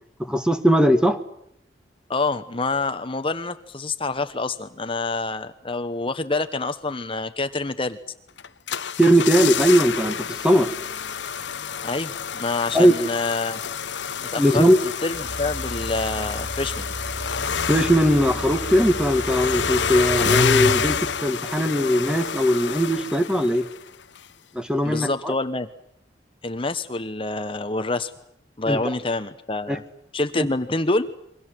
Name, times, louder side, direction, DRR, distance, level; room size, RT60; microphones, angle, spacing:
voice 1, 0.2-1.2 9.0-10.7 12.7-12.9 14.4-14.8 17.6-23.7 24.5-25.3 28.7-28.8 29.7-29.8 30.4-30.5, equal, 5° right, 9 dB, 1.9 m, -19 dB
voice 2, 2.1-8.0 11.8-13.6 14.3-16.9 24.8-25.7 26.4-28.1 28.6-29.8 30.1-31.1, left 3 dB, 30° left, 10 dB, 1.1 m, -27 dB
sound 1, 8.4-23.9 24.2-24.3, left 6 dB, 90° left, 1.0 m, -28 dB
sound 2, 15.1-21.2, right 1 dB, 75° right, 3.9 m, -35 dB
28.0 x 23.5 x 7.7 m, 0.74 s
head